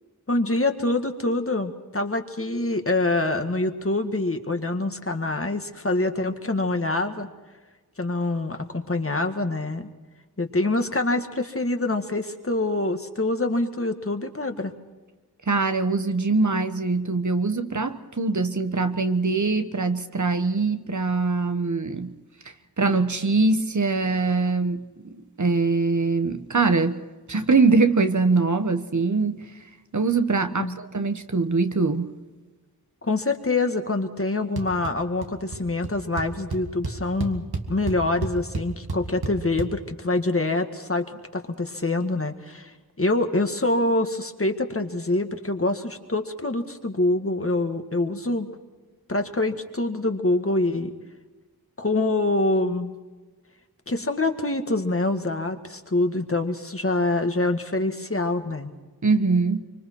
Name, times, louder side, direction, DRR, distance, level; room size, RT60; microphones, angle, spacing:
voice 1, 0.3-7.3 8.0-9.9 10.4-14.7 30.6-30.8 33.0-48.5 49.1-50.9 51.8-52.9 53.9-58.7, left 2 dB, 35° left, 1.9 m, -25 dB
voice 2, 15.5-22.1 22.8-27.0 27.3-29.5 29.9-32.1 59.0-59.6, right 3 dB, 50° right, 1.3 m, -23 dB
sound 1, 34.6-34.9 35.2-35.6 35.8-35.9 36.2-39.7, right 3 dB, 80° right, 2.1 m, -30 dB
25.0 x 25.0 x 4.7 m
wide cardioid pair, 70°, 37 cm